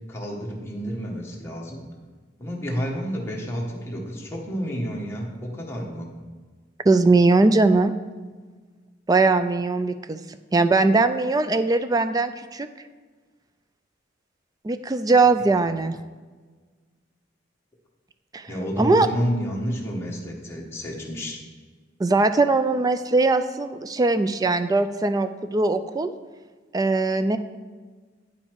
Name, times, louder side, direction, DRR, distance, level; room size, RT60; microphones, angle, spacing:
voice 1, 0.1-1.8 2.4-6.1 15.4-15.7 18.5-21.4, equal, 15° left, -2 dB, 1.3 m, -30 dB
voice 2, 6.8-7.9 9.1-10.2 10.5-12.7 14.6-16.0 18.3-18.5 18.8-19.1 22.0-26.1 26.7-27.4, right 3 dB, 20° right, 10 dB, 0.3 m, -20 dB
9.3 x 5.5 x 4.6 m, 1.4 s
head